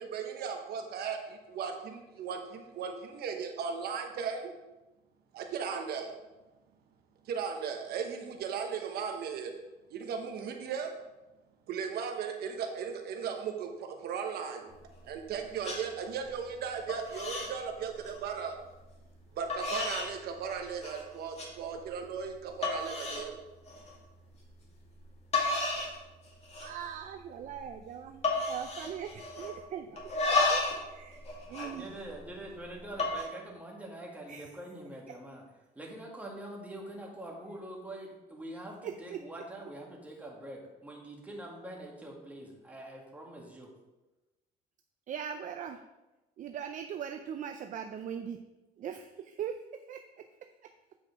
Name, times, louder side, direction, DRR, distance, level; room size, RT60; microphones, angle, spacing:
voice 1, 0.0-4.5 5.3-6.1 7.2-9.5 9.9-10.9 11.7-14.7 15.0-18.6 19.3-23.4, right 6 dB, 70° right, 4 dB, 1.0 m, -37 dB
sound 1, 14.7-15.3 15.6-15.8 16.2-16.6 16.9-17.5 17.8-18.2 18.9-19.0 19.5-20.1 20.5-21.0 21.4-21.5 22.0-22.1 22.6-23.3 23.7-23.9 25.0-25.1 25.3-26.0 26.3-26.8 27.1-27.2 27.5-27.8 28.2-29.6 30.0-30.8 31.1-32.4 32.9-33.2, left 3 dB, 40° left, 2.3 m, -32 dB
voice 2, 26.6-30.1 30.5-31.2 31.5-31.9 34.3-34.5 38.8-39.2 45.1-45.8 46.4-48.4 48.8-49.6 49.9-50.0, right 8 dB, 50° right, 7 dB, 0.5 m, -40 dB
voice 3, 31.3-35.4 35.8-43.7, right 1 dB, 10° right, -2 dB, 2.0 m, -44 dB
8.4 x 4.8 x 4.8 m, 1.1 s
cardioid pair, 110°, 17 cm